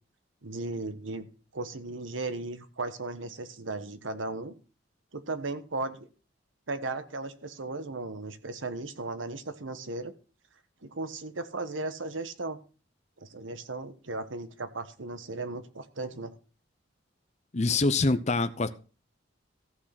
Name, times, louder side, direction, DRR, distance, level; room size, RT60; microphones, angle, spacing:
voice 1, 0.4-1.3 1.5-4.5 5.1-6.1 6.7-10.1 10.8-12.6 13.2-16.3, right 2 dB, 90° right, 11 dB, 1.3 m, -36 dB
voice 2, 17.5-18.7, left 3 dB, 35° left, 11 dB, 0.7 m, -25 dB
14.5 x 6.4 x 5.9 m, 0.36 s
head